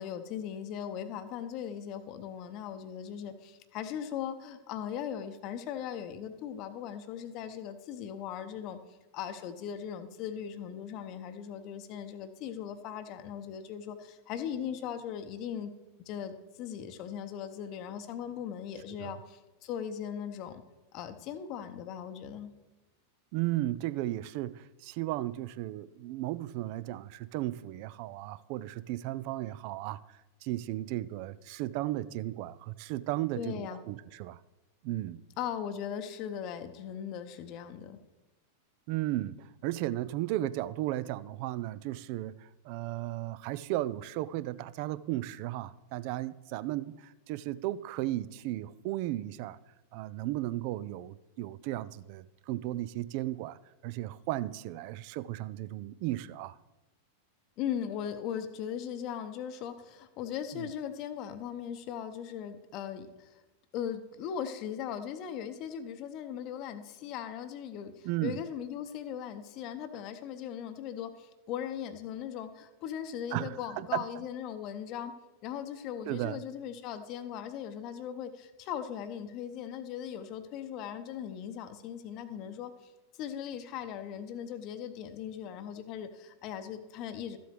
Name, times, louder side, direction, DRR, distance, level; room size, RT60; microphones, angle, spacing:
voice 1, 0.0-8.8 9.1-15.7 16.1-20.6 20.9-22.5 33.4-33.8 35.4-38.0 57.6-63.4 63.7-75.1 75.4-82.9 83.2-87.4, left 9 dB, 40° left, 10 dB, 0.8 m, -39 dB
voice 2, 23.3-34.4 34.8-35.2 38.9-49.6 49.9-56.6 60.5-60.7 68.0-68.4 73.3-74.2 76.1-76.4, right 15 dB, 45° right, 18 dB, 0.3 m, -35 dB
13.5 x 7.8 x 3.3 m, 1.1 s
figure-of-eight pair, 90°, 0 cm